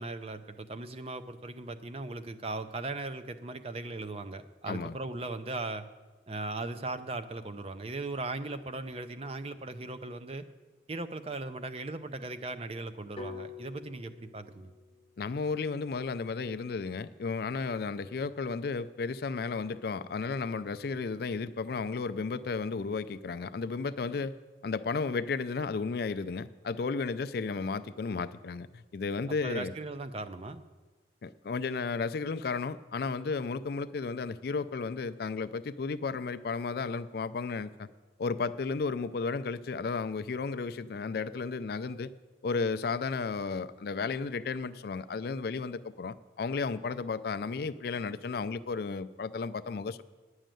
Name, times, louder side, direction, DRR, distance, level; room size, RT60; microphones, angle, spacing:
voice 1, 0.0-5.8 6.3-10.4 10.9-14.7 29.4-30.6, right 2 dB, 35° right, 10 dB, 0.5 m, -38 dB
sound 1, 13.2-17.2, left 5 dB, 30° left, 0.8 m, -48 dB
voice 2, 15.2-24.3 24.6-29.7 31.2-37.9 38.2-42.1 42.4-50.0, left 4 dB, 55° left, 13 dB, 0.4 m, -33 dB
10.0 x 6.4 x 9.0 m, 1.3 s
head